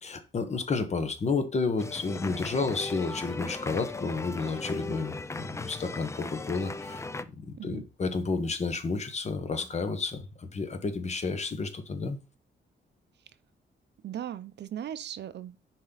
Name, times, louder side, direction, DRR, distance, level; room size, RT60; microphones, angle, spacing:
voice 1, 0.0-7.0 7.4-12.2, left 4 dB, 35° left, 1.2 m, -31 dB
sound 1, 1.8-7.2, left 3 dB, 15° left, 0.4 m, -37 dB
voice 2, 14.0-15.6, right 10 dB, 60° right, 0.5 m, -38 dB
10.5 x 4.5 x 4.0 m
wide cardioid pair, 160°, 20 cm